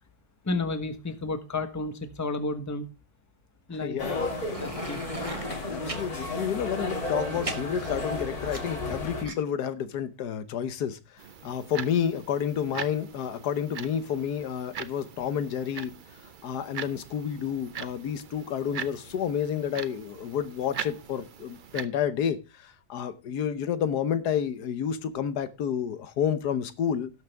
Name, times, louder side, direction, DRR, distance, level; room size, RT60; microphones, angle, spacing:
voice 1, 0.4-2.9 3.7-4.0 4.6-5.0, left 3 dB, 15° left, 0.9 m, -31 dB
voice 2, 3.8-4.3 5.6-11.0 11.4-15.9 16.4-27.1, left 8 dB, 90° left, 1.5 m, -30 dB
sound 1, 4.0-9.2, left 2 dB, 70° left, 3.0 m, -33 dB
sound 2, 4.5-6.0 6.9-8.9 9.2-9.3, right 1 dB, 25° right, 1.3 m, -37 dB
sound 3, 11.2-21.8, right 7 dB, 50° right, 0.6 m, -41 dB
17.5 x 6.5 x 3.4 m
omnidirectional pair, 1.6 m